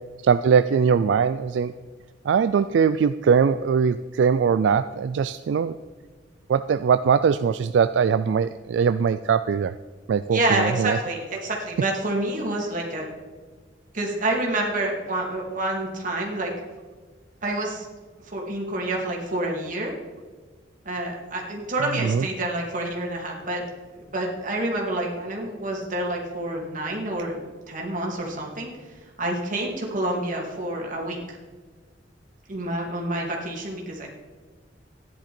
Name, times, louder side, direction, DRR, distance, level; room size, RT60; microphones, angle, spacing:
voice 1, 0.2-1.7 2.3-5.8 6.5-9.7 10.1-11.0 22.0-22.3, right 6 dB, 80° right, 13 dB, 0.3 m, -21 dB
voice 2, 10.3-13.1 13.9-16.5 17.4-17.9 18.2-19.9 20.8-23.6 23.9-27.4 27.7-28.7 29.2-31.4 32.5-34.1, right 1 dB, 45° right, -1 dB, 2.6 m, -28 dB
13.5 x 10.5 x 4.3 m, 1.4 s
head